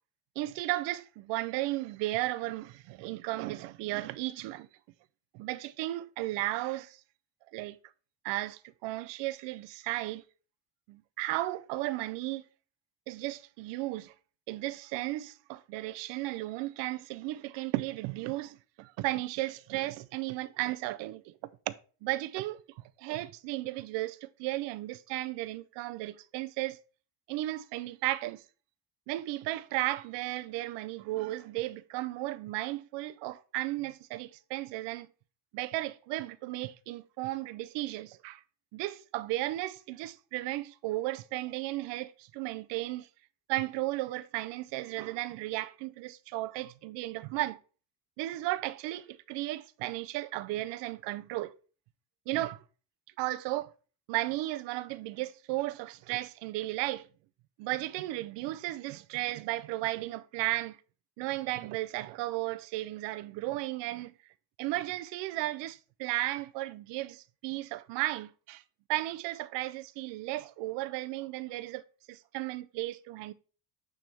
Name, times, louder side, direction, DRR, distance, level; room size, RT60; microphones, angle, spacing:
voice 1, 0.4-4.7 5.3-7.0 7.5-7.8 8.2-10.2 10.9-12.4 13.1-14.1 14.5-21.3 21.7-21.8 22.0-22.6 23.0-26.8 27.3-28.4 29.1-35.1 35.5-38.4 38.7-43.1 43.5-47.6 48.2-51.5 52.3-52.6 53.2-53.7 54.1-57.1 57.6-60.8 61.2-64.1 64.6-68.6 68.9-73.3, right 17 dB, 65° right, 0.6 m, -34 dB
9.1 x 3.5 x 4.3 m
cardioid pair, 180°, 46 cm